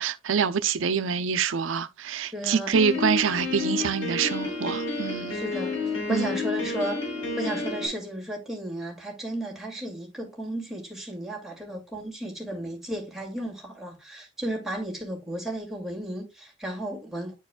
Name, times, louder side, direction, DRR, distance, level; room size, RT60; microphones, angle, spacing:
voice 1, 0.0-5.4 6.1-6.3, right 7 dB, 80° right, 0.5 m, -26 dB
voice 2, 2.3-2.7 5.3-7.0 7.4-17.3, right 1 dB, ahead, 2.2 m, -34 dB
Piano, 2.7-7.9, left 3 dB, 85° left, 4.0 m, -30 dB
10.5 x 4.7 x 2.2 m
head